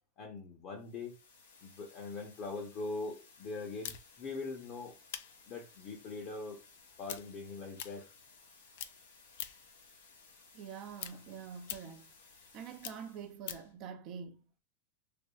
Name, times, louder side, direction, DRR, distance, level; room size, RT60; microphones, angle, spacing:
voice 1, 0.2-1.1 1.6-5.0 5.5-6.6 7.0-8.1, left 3 dB, 45° left, 0.8 m, -42 dB
sound 1, 0.7-13.4, left 4 dB, 85° left, 0.8 m, -60 dB
sound 2, 3.8-8.5 8.7-9.8 10.1-13.8, left 10 dB, 70° left, 0.3 m, -46 dB
voice 2, 10.5-12.1 12.5-14.4, right 7 dB, 45° right, 0.4 m, -46 dB
3.4 x 2.2 x 2.3 m
supercardioid pair, 130°, 0 cm